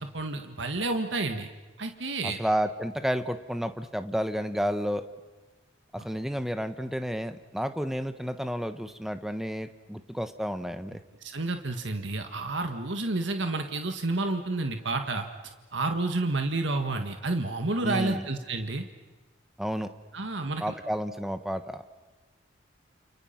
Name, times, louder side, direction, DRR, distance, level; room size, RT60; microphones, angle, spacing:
voice 1, 0.0-1.5 1.8-2.4 11.2-18.9 20.1-20.7, right 2 dB, 65° right, 6 dB, 1.7 m, -30 dB
voice 2, 2.2-5.0 5.9-11.0 17.8-18.2 19.6-19.9 20.6-21.8, equal, ahead, 9 dB, 1.2 m, -31 dB
29.5 x 29.0 x 5.9 m, 1.3 s
head